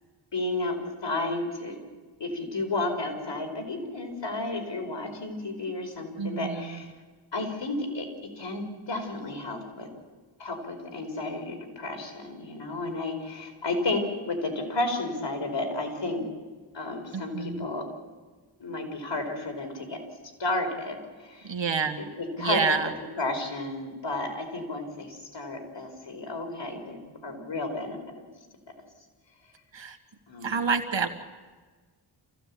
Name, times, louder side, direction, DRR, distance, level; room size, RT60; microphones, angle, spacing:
voice 1, 0.3-1.8 2.2-6.9 7.3-8.1 8.3-9.9 10.4-16.2 16.7-17.8 18.6-20.0 20.4-21.5 22.0-22.6 23.2-28.0 30.3-30.6, left 2 dB, 60° left, 3 dB, 4.9 m, -32 dB
voice 2, 6.2-6.8 17.1-17.7 21.4-22.0 22.4-22.9 29.7-30.0 30.4-31.1, right 5 dB, 65° right, 7 dB, 1.9 m, -28 dB
27.5 x 16.0 x 8.6 m, 1.4 s
cardioid pair, 60°, 48 cm